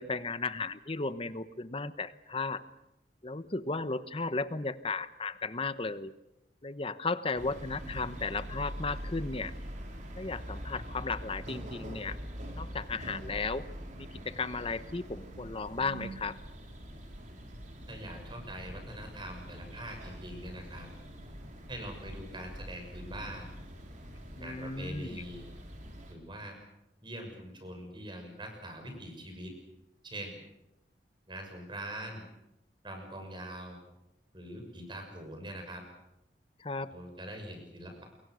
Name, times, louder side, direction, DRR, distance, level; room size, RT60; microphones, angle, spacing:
voice 1, 0.0-2.6 3.2-6.1 6.6-9.5 10.2-12.2 12.6-13.6 14.0-16.4 24.4-25.2 36.6-36.9, left 3 dB, 30° left, 13 dB, 1.1 m, -35 dB
sound 1, 7.3-26.1, equal, 45° right, 4.4 m, -44 dB
voice 2, 17.9-20.9 21.7-23.5 24.4-25.4 26.1-26.6 27.0-29.5 30.0-30.4 31.3-32.2 32.8-33.8 34.3-35.8 36.9-38.0, right 1 dB, 30° right, 4 dB, 6.6 m, -43 dB
28.5 x 22.5 x 6.4 m, 0.91 s
head